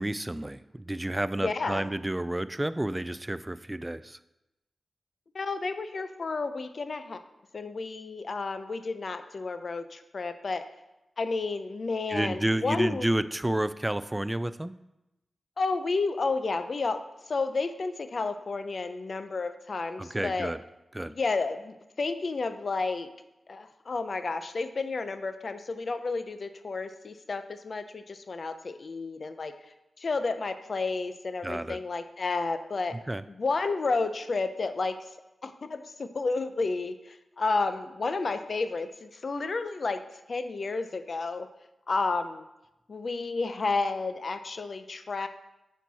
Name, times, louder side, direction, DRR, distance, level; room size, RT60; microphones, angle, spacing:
voice 1, 0.0-4.2 12.1-14.7 20.0-20.6 20.9-21.1 31.4-31.8 33.1-33.2, right 1 dB, 15° right, 14 dB, 0.3 m, -30 dB
voice 2, 1.4-1.9 5.3-7.2 7.5-10.6 11.2-13.1 15.6-20.5 21.1-23.1 23.5-29.6 30.0-33.0 33.4-35.0 35.4-40.0 40.3-41.5 41.9-42.5 42.9-45.3, left 3 dB, 55° left, 10 dB, 0.5 m, -31 dB
9.0 x 4.5 x 4.1 m, 0.93 s
cardioid pair, 75°, 0 cm